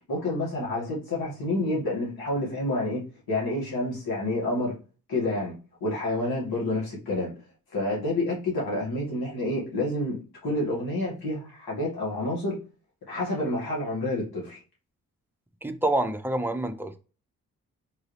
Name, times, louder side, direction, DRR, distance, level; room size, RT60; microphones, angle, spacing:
voice 1, 0.1-3.0 3.3-4.7 5.1-5.5 5.8-7.3 7.7-12.6 13.1-14.6, left 1 dB, 90° left, 1.8 m, -28 dB
voice 2, 15.6-17.0, right 1 dB, 5° right, 0.5 m, -27 dB
4.0 x 2.6 x 3.2 m
cardioid pair, 65°, 36 cm